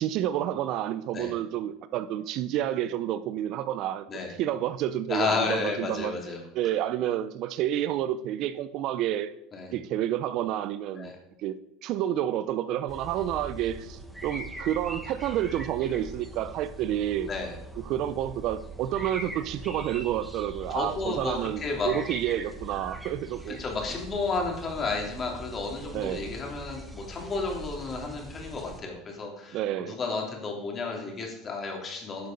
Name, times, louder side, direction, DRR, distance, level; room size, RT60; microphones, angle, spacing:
voice 1, 0.0-4.1 4.4-6.1 6.5-9.3 9.7-11.1 11.4-17.3 17.8-23.6 25.9-26.2 29.5-30.0, right 11 dB, 55° right, 0.6 m, -29 dB
voice 2, 5.1-6.4 9.5-9.7 11.0-11.2 17.3-17.5 20.7-21.9 23.6-29.6 29.9-32.3, left 4 dB, 30° left, 2.9 m, -32 dB
sound 1, 12.9-28.8, right 1 dB, 5° right, 1.5 m, -42 dB
11.5 x 6.6 x 5.2 m
supercardioid pair, 105°, 0 cm